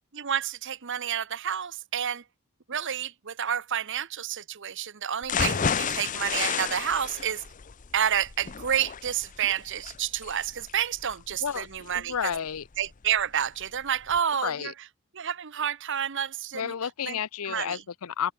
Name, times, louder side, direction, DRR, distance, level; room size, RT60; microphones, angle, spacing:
voice 1, 0.1-2.2 2.7-7.4 7.9-12.3 12.8-14.7 15.1-16.7 17.1-17.2 17.4-17.8, right 9 dB, 60° right, 0.9 m, -29 dB
sound 1, 5.2-13.2 13.6-13.7 14.1-14.2, left 6 dB, 35° left, 0.6 m, -32 dB
voice 2, 11.9-12.7 14.4-14.7 16.5-18.3, left 7 dB, 80° left, 0.6 m, -31 dB
head